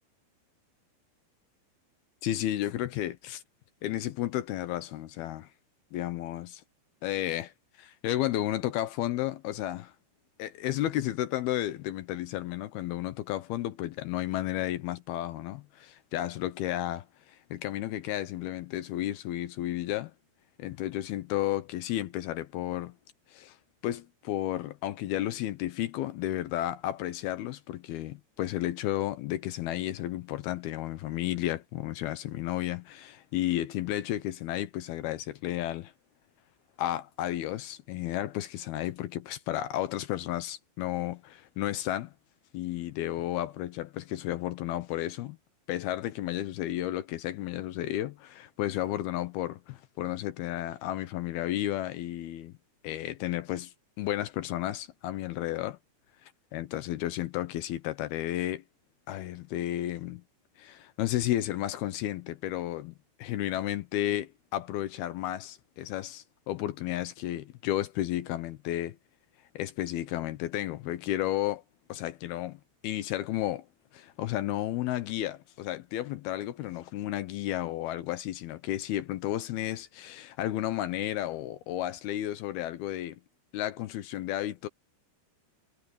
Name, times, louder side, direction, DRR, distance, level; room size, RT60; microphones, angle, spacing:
voice 1, 2.2-3.4 3.8-5.5 5.9-6.6 7.0-7.5 7.8-9.9 10.4-20.1 20.6-23.0 23.3-23.6 23.8-35.9 36.8-42.1 42.5-45.4 45.7-52.5 52.8-55.8 56.5-58.6 59.1-60.2 60.6-69.0 69.6-71.6 71.9-73.7 73.9-83.2 83.5-84.7, left 13 dB, 75° left, 2.4 m, -32 dB
omnidirectional pair, 5.3 m